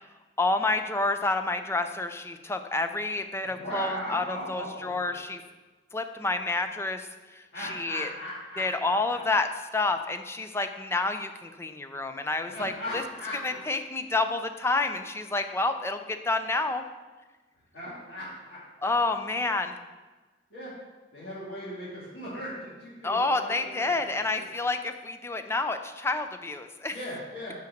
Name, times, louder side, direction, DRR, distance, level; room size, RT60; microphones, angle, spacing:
voice 1, 0.4-5.4 5.9-7.1 7.3-8.1 8.6-13.0 13.4-16.8 18.8-19.8 23.0-27.0, left 3 dB, 15° left, 8 dB, 0.4 m, -29 dB
voice 2, 3.4-5.1 7.5-8.9 12.5-13.6 17.7-18.9 20.5-20.7 21.1-23.9 26.9-27.5, equal, 70° left, -11 dB, 2.6 m, -38 dB
5.5 x 5.1 x 6.5 m, 1.2 s
head